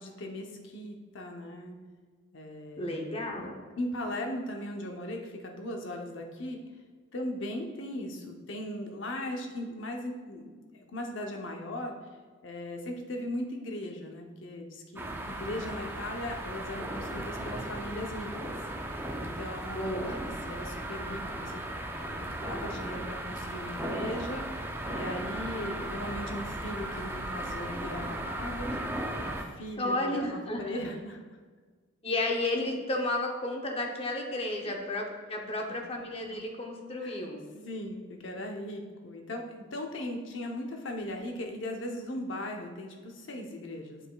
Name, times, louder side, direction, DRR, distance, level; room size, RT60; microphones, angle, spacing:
voice 1, 0.0-1.8 2.3-3.3 3.8-6.6 7.1-11.9 12.4-18.5 19.2-21.6 22.0-31.2 37.0-37.2 37.5-44.0, left 1 dB, 70° left, 2 dB, 0.8 m, -38 dB
voice 2, 2.8-3.6 19.7-20.2 29.8-30.9 32.0-37.4, left 1 dB, 30° left, 1 dB, 0.8 m, -32 dB
sound 1, 15.0-29.4, right 1 dB, 10° right, 0.4 m, -36 dB
8.5 x 4.9 x 2.3 m, 1.5 s
head